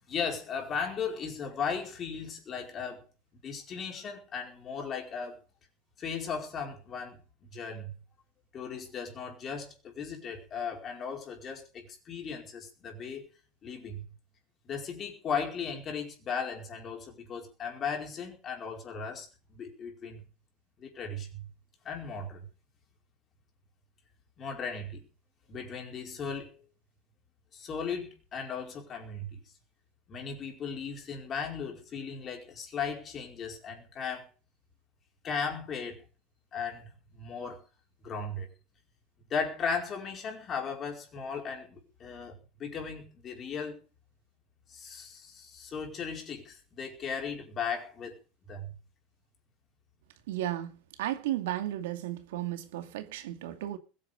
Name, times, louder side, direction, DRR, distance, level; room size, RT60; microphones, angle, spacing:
voice 1, 0.1-3.0 3.4-5.4 6.0-7.2 7.5-7.9 8.5-13.3 13.6-14.0 14.6-20.2 20.8-21.5 21.8-22.5 24.4-25.0 25.5-26.6 27.5-29.5 30.1-34.3 35.2-36.0 36.5-37.6 38.0-38.5 39.3-43.8 44.7-48.2 48.5-48.8, left 5 dB, 20° left, 4.9 m, -37 dB
voice 2, 50.3-53.8, right 13 dB, 85° right, 2.5 m, -34 dB
21.0 x 9.5 x 5.2 m
supercardioid pair, 175°, 0 cm